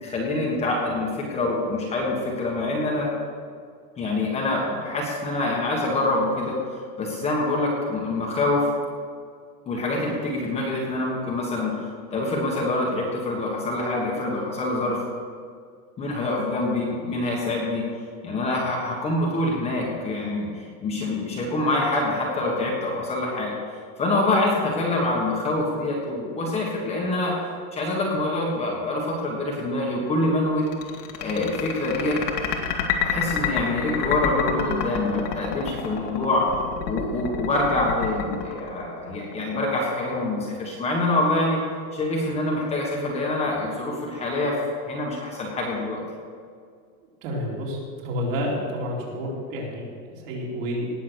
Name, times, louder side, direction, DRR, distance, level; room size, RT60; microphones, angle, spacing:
voice 1, 0.0-3.1 4.0-8.7 9.6-15.0 16.0-17.8 18.2-23.5 24.0-27.3 27.7-30.7 31.2-32.5 33.0-36.4 36.8-41.6 41.9-44.6 44.9-46.0, left 2 dB, 15° left, -3 dB, 1.5 m, -25 dB
sound 1, 30.7-39.3, left 8 dB, 80° left, 2.2 m, -28 dB
voice 2, 47.2-50.9, equal, 55° right, -3 dB, 4.0 m, -30 dB
18.5 x 7.5 x 6.3 m, 2.1 s
supercardioid pair, 175°, 47 cm